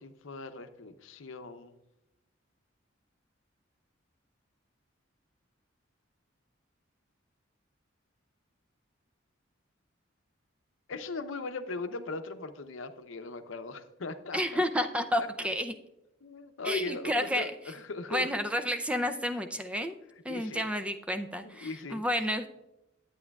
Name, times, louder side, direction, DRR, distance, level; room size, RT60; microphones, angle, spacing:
voice 1, 0.0-1.7 10.9-14.9 15.2-15.3 16.2-18.3 20.3-20.6 21.4-22.0, left 3 dB, 75° left, 9 dB, 0.7 m, -39 dB
voice 2, 14.3-15.7 16.6-17.5 18.1-20.0 20.2-22.5, equal, 5° right, 8 dB, 0.4 m, -30 dB
11.0 x 8.9 x 2.3 m, 0.89 s
head